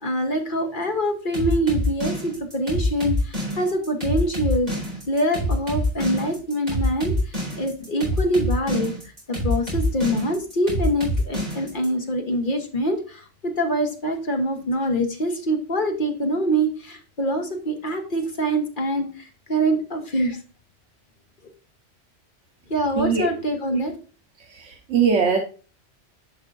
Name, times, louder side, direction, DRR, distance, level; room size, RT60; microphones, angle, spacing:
voice 1, 0.0-4.7 5.1-8.9 9.3-19.1 19.5-20.4 22.7-23.9, equal, 45° left, 4 dB, 1.3 m, -24 dB
sound 1, 1.3-11.9, equal, 35° right, 4.3 m, -26 dB
voice 2, 23.0-23.3 24.5-25.4, right 6 dB, 85° right, 2 dB, 1.3 m, -21 dB
11.0 x 5.3 x 2.5 m, 0.36 s
omnidirectional pair, 1.2 m